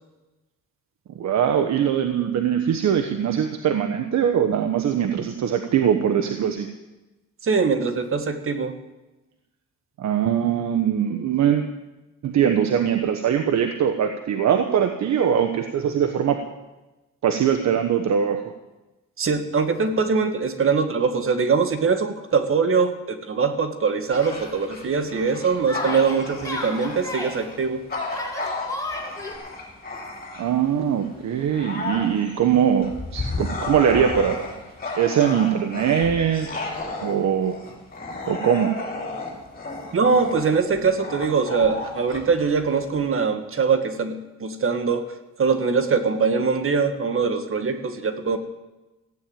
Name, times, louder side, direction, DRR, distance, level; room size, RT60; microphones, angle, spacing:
voice 1, 1.1-6.7 10.0-11.7 12.2-16.4 17.2-18.4 30.4-34.4 34.9-36.5 37.0-37.6 38.3-38.7, right 8 dB, 65° right, 6 dB, 1.2 m, -22 dB
voice 2, 7.4-8.8 19.2-27.9 39.9-45.0 45.4-48.4, right 5 dB, 45° right, 8 dB, 1.7 m, -22 dB
Bark / Growling, 24.1-30.7 31.2-43.0, left 3 dB, 30° left, 5.4 m, -33 dB
Yell, 24.1-24.4 25.7-27.4 28.1-29.4, left 2 dB, 10° left, 5.2 m, -33 dB
15.5 x 9.2 x 8.8 m, 1.1 s
cardioid pair, 90°, 30 cm